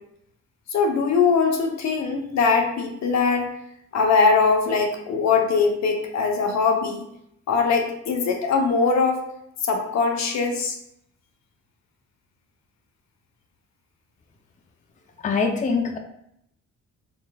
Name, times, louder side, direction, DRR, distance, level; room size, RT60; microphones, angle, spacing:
voice 1, 0.7-3.5 3.9-7.1 7.5-9.2 9.6-10.8, left 5 dB, 65° left, 3 dB, 0.8 m, -21 dB
voice 2, 15.2-16.0, left 5 dB, 25° left, 3 dB, 0.5 m, -23 dB
4.0 x 3.8 x 2.3 m, 0.75 s
cardioid pair, 90°, 30 cm